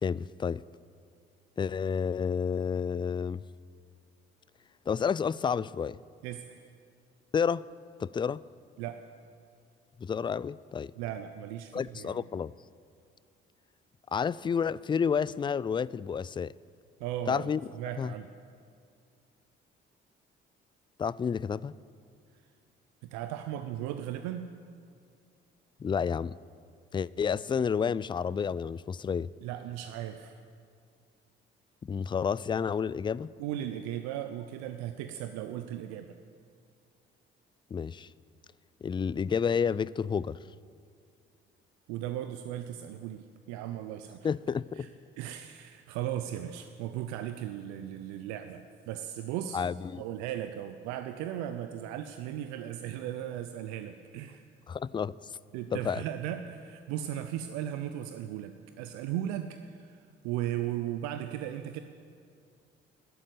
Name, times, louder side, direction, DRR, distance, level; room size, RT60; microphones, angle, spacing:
voice 1, 0.0-0.6 1.6-3.4 4.9-6.0 7.3-7.6 8.0-8.4 10.0-10.9 11.7-12.5 14.1-16.5 17.3-17.6 18.0-18.1 21.0-21.8 25.8-26.3 26.9-29.3 31.9-33.3 37.7-38.1 38.8-40.4 44.2-44.9 49.5-50.0 54.7-55.2 55.7-56.0, left 6 dB, 15° left, 21 dB, 0.3 m, -30 dB
voice 2, 11.0-12.2 17.0-18.3 23.1-24.5 29.4-30.4 33.4-36.2 41.9-44.3 44.8-44.9 45.2-49.6 50.0-54.4 55.5-61.8, right 11 dB, 70° right, 9 dB, 0.7 m, -37 dB
12.5 x 11.5 x 9.3 m, 2.3 s
figure-of-eight pair, 45°, 29 cm